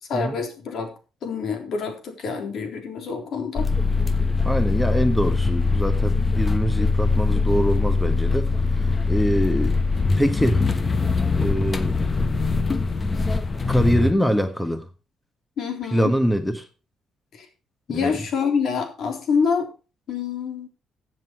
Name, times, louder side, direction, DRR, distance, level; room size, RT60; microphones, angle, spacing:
voice 1, 0.1-0.9 1.2-3.7 15.6-16.2 17.3-17.5 17.9-19.7 20.1-20.7, left 5 dB, 65° left, 3.7 m, -26 dB
sound 1, 3.5-14.1, left 3 dB, 30° left, 1.2 m, -22 dB
voice 2, 4.4-8.5 8.8-10.6 11.3-12.0 13.7-14.9 15.9-16.6 17.9-18.2, equal, 5° left, 1.3 m, -24 dB
14.5 x 7.9 x 4.6 m
cardioid pair, 95°, 0 cm